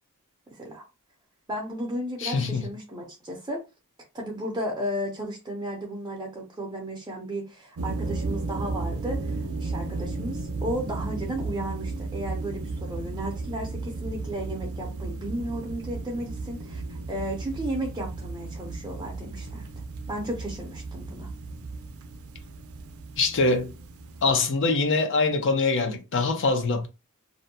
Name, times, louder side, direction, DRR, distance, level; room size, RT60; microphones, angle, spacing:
voice 1, 0.5-0.8 1.5-3.6 4.1-19.7 20.1-21.3, right 1 dB, 20° right, 0.5 m, -34 dB
voice 2, 2.2-2.7 23.2-23.7 24.2-26.9, left 3 dB, 60° left, 0.6 m, -24 dB
sound 1, 7.8-24.3, right 3 dB, 75° right, 0.4 m, -34 dB
2.5 x 2.1 x 2.6 m
head